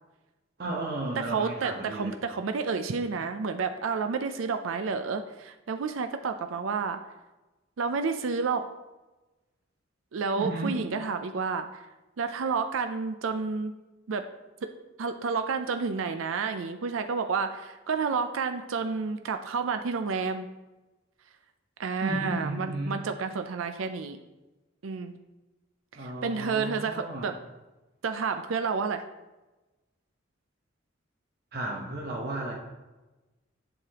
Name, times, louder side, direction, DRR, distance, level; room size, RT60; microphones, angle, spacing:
voice 1, 0.6-2.1 10.4-10.8 22.0-23.0 25.9-27.3 31.5-32.5, right 1 dB, 55° right, -2 dB, 1.0 m, -33 dB
voice 2, 1.2-7.0 7.8-8.7 10.1-11.8 12.2-13.7 14.1-14.3 15.0-20.5 21.8-24.2 24.8-25.1 25.9-27.3 28.0-29.0, right 5 dB, 85° right, 8 dB, 0.5 m, -30 dB
7.7 x 6.6 x 2.9 m, 1.1 s
head